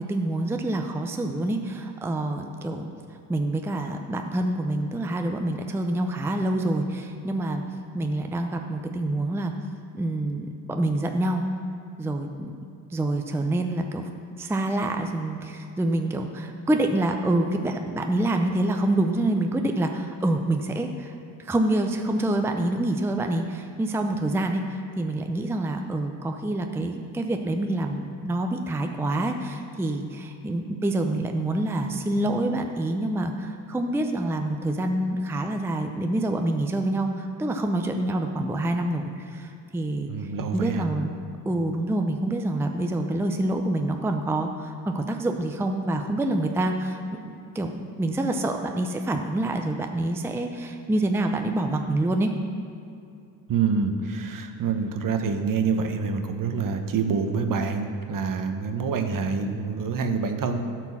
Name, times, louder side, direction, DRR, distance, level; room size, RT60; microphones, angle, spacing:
voice 1, 0.0-2.9 3.3-7.6 7.9-9.5 9.9-11.4 12.0-12.6 12.9-14.0 14.4-21.1 21.4-40.1 40.5-41.2 41.5-47.2 47.5-52.3, right 1 dB, 5° right, 4 dB, 0.6 m, -26 dB
voice 2, 40.1-40.9 53.5-60.6, right 5 dB, 45° right, 6 dB, 1.1 m, -26 dB
12.0 x 4.6 x 7.2 m, 2.6 s
supercardioid pair, 90°, 44 cm